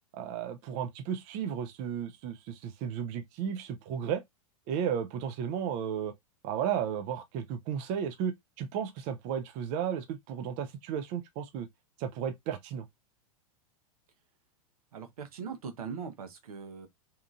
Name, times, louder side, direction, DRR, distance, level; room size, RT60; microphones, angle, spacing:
voice 1, 0.1-4.2 4.7-6.1 6.4-11.7 12.0-12.9, right 8 dB, 45° right, 0.5 m, -34 dB
voice 2, 14.9-16.9, right 6 dB, 80° right, 0.9 m, -40 dB
2.8 x 2.5 x 2.4 m
hypercardioid pair, 110°, 19 cm